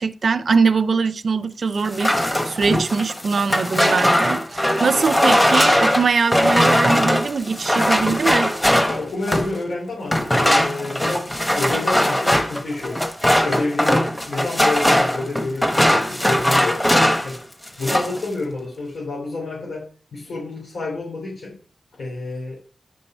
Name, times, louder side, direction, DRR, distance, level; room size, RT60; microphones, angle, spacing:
voice 1, 0.0-8.5, right 5 dB, 60° right, 0.6 m, -22 dB
sound 1, 1.8-9.6 10.1-17.4 17.6-18.2, equal, 10° left, 1.2 m, -19 dB
voice 2, 8.9-11.3 11.6-13.0 13.4-16.8 17.2-17.4 17.8-21.5 21.9-22.6, left 2 dB, 80° left, 3.6 m, -29 dB
9.7 x 5.4 x 4.5 m
wide cardioid pair, 150°, 0 cm